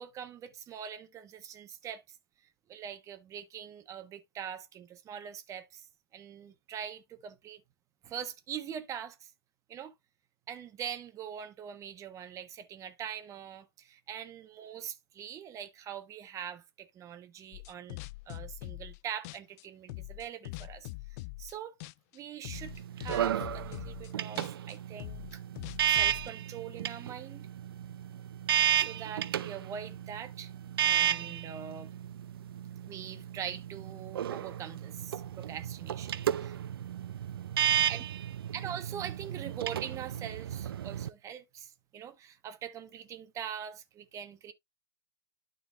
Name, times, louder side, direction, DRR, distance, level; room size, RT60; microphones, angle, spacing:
voice 1, 0.0-2.2 2.7-5.8 6.1-7.6 8.0-9.3 9.7-9.9 10.5-18.0 18.3-21.8 22.1-25.4 25.9-27.5 28.8-30.5 30.8-31.9 32.8-36.6 37.9-38.0 38.5-44.5, right 9 dB, 25° right, 1.2 m, -43 dB
sound 1, 17.5-19.0 19.2-21.5 21.8-22.2 22.4-26.3, left 21 dB, 40° left, 0.4 m, -43 dB
sound 2, 22.5-41.1, right 10 dB, 70° right, 0.6 m, -33 dB
12.0 x 4.1 x 2.5 m
hypercardioid pair, 115°, 13 cm